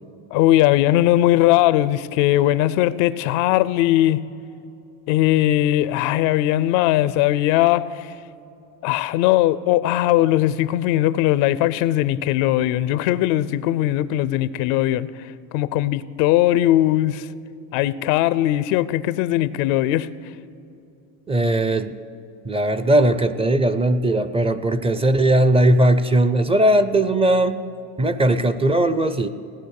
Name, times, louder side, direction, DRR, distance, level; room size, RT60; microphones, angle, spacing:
voice 1, 0.3-4.2 5.1-8.1 8.8-15.1 15.5-17.3 17.7-20.1, left 14 dB, 90° left, 17 dB, 0.6 m, -19 dB
voice 2, 21.3-22.0 22.4-27.6 28.0-29.3, right 1 dB, 15° right, 12 dB, 0.4 m, -18 dB
17.0 x 10.5 x 6.5 m, 2.7 s
cardioid pair, 125°, 38 cm